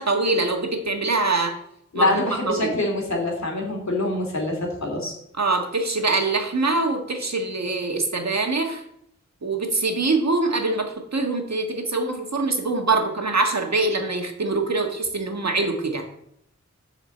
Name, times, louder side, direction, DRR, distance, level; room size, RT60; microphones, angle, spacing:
voice 1, 0.0-1.5 1.9-2.8 5.4-8.8 9.4-16.1, right 3 dB, 65° right, 3 dB, 1.6 m, -24 dB
voice 2, 1.9-5.1, left 2 dB, 70° left, -1 dB, 2.8 m, -25 dB
7.6 x 4.9 x 7.1 m, 0.74 s
wide cardioid pair, 70°, 29 cm